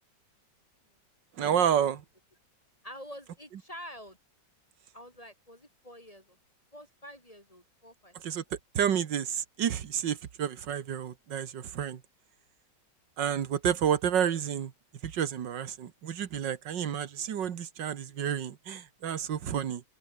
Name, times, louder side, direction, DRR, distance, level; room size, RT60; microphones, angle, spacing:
voice 1, 1.4-2.0 8.2-8.4 8.8-12.0 13.2-14.7 15.0-19.8, right 9 dB, 80° right, 2.1 m, -30 dB
voice 2, 2.8-4.2 4.9-6.4 6.7-8.6, equal, 20° left, 3.7 m, -48 dB
omnidirectional pair, 1.9 m